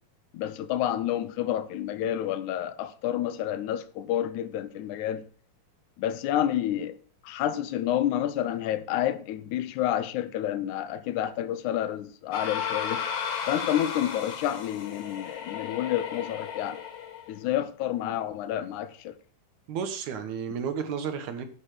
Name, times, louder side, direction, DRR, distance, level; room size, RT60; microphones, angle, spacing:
voice 1, 0.3-5.3 6.0-7.0 7.2-13.0 13.5-16.8 17.3-19.2, left 11 dB, 75° left, 1.9 m, -29 dB
sound 1, 12.3-17.4, left 7 dB, 55° left, 1.9 m, -34 dB
voice 2, 19.7-21.4, right 7 dB, 65° right, 2.2 m, -32 dB
10.0 x 5.6 x 6.1 m
omnidirectional pair, 4.0 m